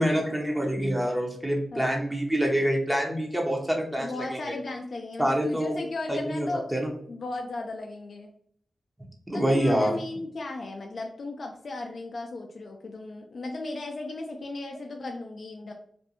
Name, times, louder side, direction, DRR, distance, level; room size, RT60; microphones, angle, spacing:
voice 1, 0.0-4.6 5.2-5.7 6.1-6.9 9.3-9.9, equal, 10° right, 0 dB, 0.6 m, -26 dB
voice 2, 1.7-2.1 4.0-6.7 7.1-8.3 9.3-15.7, left 2 dB, 60° left, 2 dB, 0.4 m, -36 dB
2.5 x 2.2 x 2.8 m, 0.62 s
cardioid pair, 55°, 0 cm